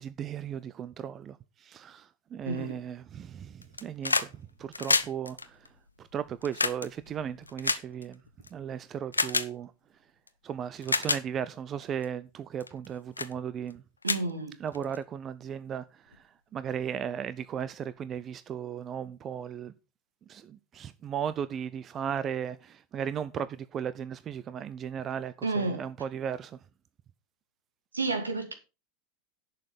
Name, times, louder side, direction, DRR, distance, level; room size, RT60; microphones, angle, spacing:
voice 1, 0.0-5.7 6.0-8.2 8.5-9.7 10.4-13.8 14.6-19.7 20.3-26.6, right 8 dB, 30° right, 0.7 m, -36 dB
voice 2, 2.5-2.8 14.0-14.5 25.4-25.8 27.9-28.5, right 3 dB, 80° right, 2.2 m, -30 dB
sound 1, 3.6-4.3 4.6-8.5 9.1-9.5 10.3-10.4 10.8-11.2 11.8-12.0 12.6-12.9 13.2-13.3 13.7-13.8 14.0-15.0 16.1-16.2, left 3 dB, 80° left, 0.7 m, -29 dB
11.0 x 6.9 x 5.6 m
figure-of-eight pair, 85°, 0 cm